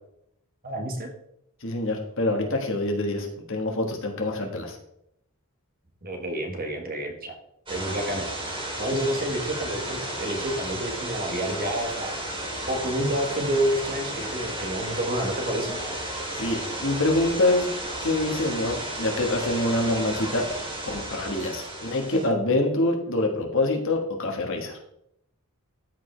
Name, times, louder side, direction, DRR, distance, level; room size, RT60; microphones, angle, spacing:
voice 1, 0.6-1.1 6.0-7.4 7.7-8.3 8.8-12.2 12.7-15.8, right 1 dB, 40° right, 4 dB, 1.4 m, -29 dB
voice 2, 1.6-4.8 16.3-17.7 18.0-20.5 20.8-24.8, left 2 dB, 60° left, 2 dB, 1.5 m, -25 dB
sound 1, 7.7-22.3, right 1 dB, 25° right, 2.4 m, -33 dB
13.5 x 4.9 x 3.3 m, 0.76 s
head